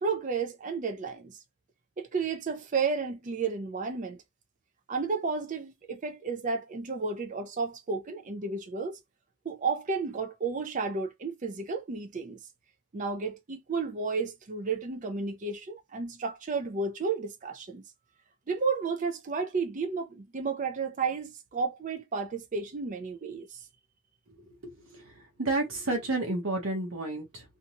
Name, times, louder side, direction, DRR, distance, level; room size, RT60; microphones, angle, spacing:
voice 1, 0.0-1.4 2.0-4.2 4.9-9.0 9.4-12.4 12.9-17.8 18.5-23.7, right 4 dB, 35° right, 0.4 m, -32 dB
voice 2, 24.6-25.0 25.4-27.4, right 2 dB, 65° right, 0.9 m, -30 dB
2.6 x 2.2 x 2.8 m
head